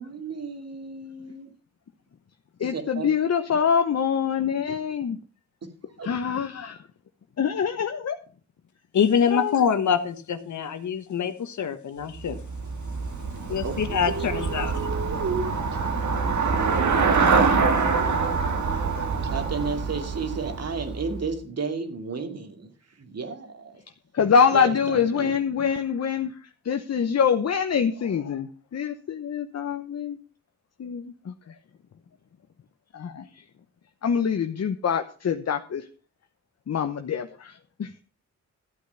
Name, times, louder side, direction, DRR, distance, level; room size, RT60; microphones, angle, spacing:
voice 1, 0.0-1.5 2.6-3.1 5.6-5.7 6.0-6.1 13.6-15.5 19.1-22.7 23.0-23.8 24.5-25.3, right 4 dB, 60° right, 6 dB, 2.5 m, -33 dB
voice 2, 2.6-5.2 6.0-6.8 7.4-8.2 9.3-9.5 24.1-26.3 26.6-30.2 30.8-31.5 32.9-33.3 34.0-35.9 36.7-38.0, left 7 dB, 60° left, 7 dB, 1.0 m, -25 dB
voice 3, 8.9-12.4 13.5-14.8, left 7 dB, 75° left, 10 dB, 1.4 m, -25 dB
Traffic noise roadway noise / Bicycle, 12.2-21.3, right 5 dB, 75° right, 2.2 m, -25 dB
13.0 x 8.5 x 5.7 m, 0.37 s
cardioid pair, 75°, 29 cm